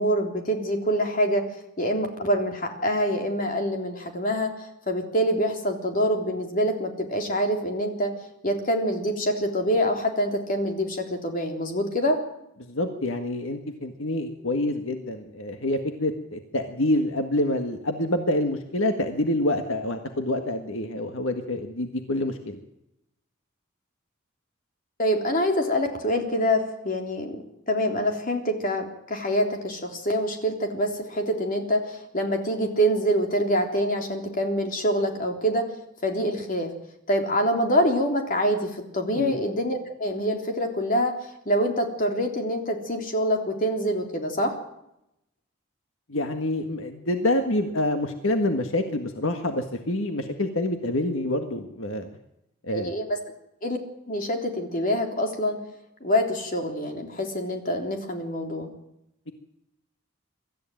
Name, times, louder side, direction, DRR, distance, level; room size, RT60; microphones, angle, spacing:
voice 1, 0.0-1.4 1.8-4.5 4.9-8.1 8.4-12.2 25.0-35.7 36.0-36.7 37.1-41.1 41.5-44.5 52.7-53.2 53.6-53.8 54.1-55.6 56.0-58.7, equal, 40° left, 4 dB, 3.5 m, -25 dB
voice 2, 12.6-22.6 39.1-39.4 46.1-52.1 52.6-52.9, left 1 dB, 75° left, 6 dB, 1.7 m, -27 dB
24.0 x 14.0 x 9.1 m, 0.84 s
head